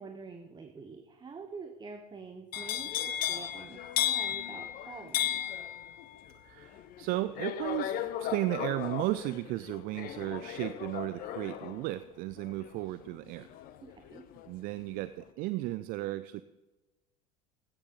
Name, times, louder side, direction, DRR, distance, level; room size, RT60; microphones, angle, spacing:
voice 1, 0.0-5.4 13.8-14.2, right 4 dB, 20° right, 6 dB, 1.0 m, -47 dB
sound 1, 2.5-14.5 14.8-15.3, left 11 dB, 45° left, 0.9 m, -36 dB
voice 2, 6.3-13.5 14.5-16.4, right 17 dB, 50° right, 14 dB, 0.5 m, -35 dB
14.0 x 9.9 x 3.8 m, 1.1 s
hypercardioid pair, 75°, 20 cm